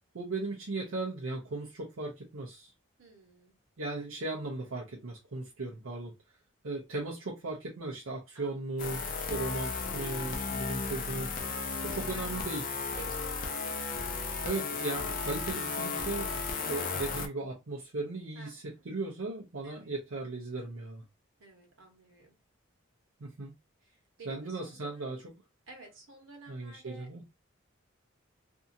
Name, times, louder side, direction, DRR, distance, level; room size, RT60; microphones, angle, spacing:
voice 1, 0.1-2.7 3.8-6.1 6.6-9.0 9.3-11.3 11.8-12.8 14.4-21.0 23.2-23.5 24.3-25.2 26.5-27.2, right 3 dB, 90° right, 0.7 m, -37 dB
voice 2, 3.0-3.5 8.3-8.6 11.5-13.8 18.3-18.9 19.6-19.9 21.4-22.4 23.9-25.2 25.7-27.1, right 3 dB, 75° right, 1.1 m, -53 dB
sound 1, 8.8-17.3, left 4 dB, 40° left, 0.5 m, -34 dB
2.7 x 2.4 x 2.7 m
head